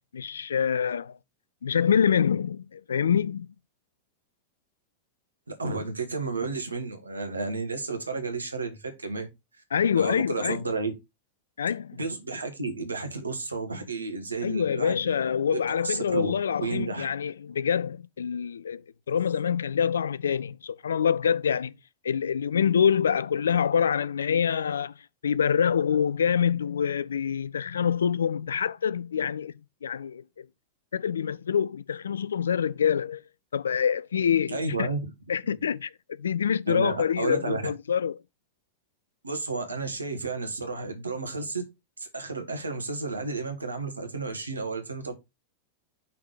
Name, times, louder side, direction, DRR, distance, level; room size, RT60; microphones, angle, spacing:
voice 1, 0.1-1.2 1.6-3.5 9.7-10.6 11.6-12.0 14.4-21.7 22.0-24.9 25.2-30.5 30.9-33.2 33.5-34.9 35.3-38.2, left 7 dB, 70° left, 0.3 m, -26 dB
voice 2, 5.6-9.3 9.9-10.9 11.9-15.1 15.5-15.6 15.8-16.3 16.6-17.1 34.5-35.1 36.7-37.6 39.2-41.6 42.0-45.1, right 3 dB, 80° right, 1.5 m, -32 dB
5.7 x 3.8 x 4.7 m
figure-of-eight pair, 90°, 0 cm